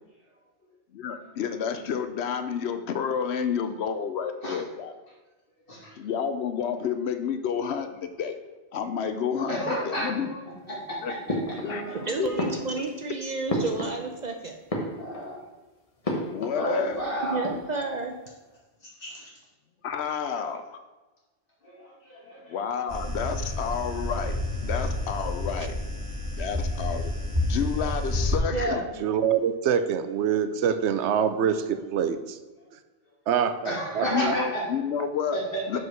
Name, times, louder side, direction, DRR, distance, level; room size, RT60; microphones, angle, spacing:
voice 1, 0.9-4.9 6.0-8.4 8.7-10.3 11.0-11.1 11.6-11.8 12.2-12.3 16.3-17.0 19.8-20.8 22.5-25.7 26.4-27.1 27.5-28.8 34.0-35.4 35.7-35.8, left 7 dB, 75° left, 9 dB, 0.9 m, -30 dB
voice 2, 5.7-6.0 9.5-10.4 10.7-11.2 11.6-12.4 15.0-15.4 16.1-16.2 16.5-17.4 19.0-19.2 21.6-22.6 33.6-34.6 35.3-35.6, right 1 dB, 55° left, -5 dB, 2.4 m, -32 dB
sound 1, 11.3-12.0 12.4-14.3 14.6-15.4 16.0-16.7 16.9-17.0 17.3-18.0, equal, 35° left, 1.2 m, -32 dB
voice 3, 11.9-14.6 17.3-18.1 28.5-28.9, right 3 dB, 45° right, 3 dB, 0.6 m, -31 dB
sound 2, 22.9-28.4, left 1 dB, 30° right, 1.3 m, -29 dB
voice 4, 29.0-32.4 33.3-34.4, right 8 dB, 85° right, 10 dB, 0.9 m, -25 dB
5.1 x 4.6 x 6.2 m, 1.2 s
omnidirectional pair, 1.1 m